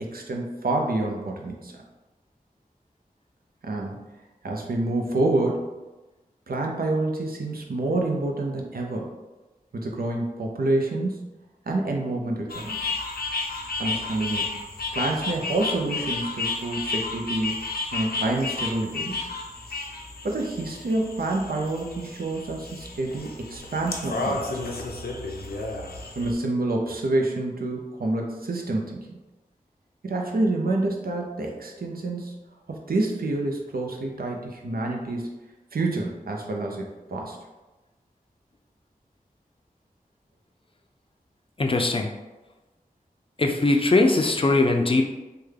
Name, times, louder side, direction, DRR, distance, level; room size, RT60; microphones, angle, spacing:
voice 1, 0.0-1.8 3.6-4.0 4.4-5.7 6.5-9.1 9.7-11.3 11.7-12.8 13.8-14.6 14.9-19.2 20.2-24.5 26.1-29.0 30.0-32.3 32.7-35.4 35.7-37.4, right 2 dB, 70° right, 1 dB, 0.6 m, -28 dB
sound 1, 12.5-26.3, left 3 dB, 85° left, 0.5 m, -32 dB
voice 2, 41.6-42.1 43.4-45.0, left 2 dB, 35° left, 3 dB, 0.4 m, -20 dB
3.4 x 2.2 x 3.3 m, 1.1 s
cardioid pair, 40°, 16 cm